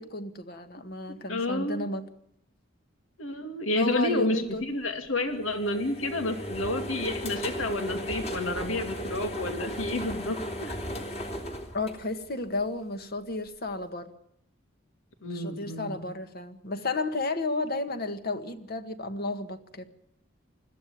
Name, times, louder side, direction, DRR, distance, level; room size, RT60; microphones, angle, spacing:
voice 1, 0.0-2.0 3.7-4.6 11.7-14.1 15.2-19.9, left 2 dB, 50° left, 9 dB, 1.8 m, -32 dB
voice 2, 1.3-1.8 3.2-10.7 15.2-15.9, left 2 dB, 85° left, 6 dB, 2.6 m, -30 dB
sound 1, 5.3-12.6, equal, 35° left, 3.3 m, -36 dB
21.5 x 14.5 x 9.4 m, 0.71 s
head